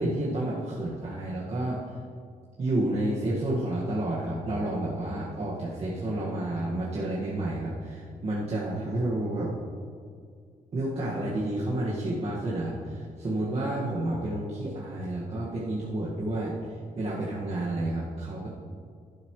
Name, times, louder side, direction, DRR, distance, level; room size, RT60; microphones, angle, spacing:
voice 1, 0.0-1.8 2.6-9.5 10.7-16.6 17.0-18.5, right 1 dB, 45° right, -7 dB, 1.9 m, -30 dB
12.0 x 11.5 x 3.2 m, 2.1 s
cardioid pair, 105°, 15 cm